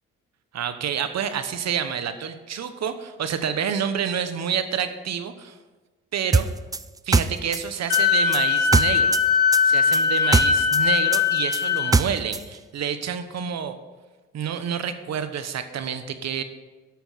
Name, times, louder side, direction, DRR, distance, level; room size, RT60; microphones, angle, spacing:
voice 1, 0.5-5.6 6.1-6.5 7.0-9.1 9.6-13.8 14.3-16.4, right 8 dB, 60° right, 10 dB, 1.1 m, -28 dB
sound 1, 6.3-9.2 9.5-12.4, right 3 dB, 15° right, 0.3 m, -22 dB
Wind instrument woodwind instrument, 7.9-11.9, left 6 dB, 75° left, 2.0 m, -20 dB
11.5 x 7.0 x 5.7 m, 1.3 s
cardioid pair, 90°, 30 cm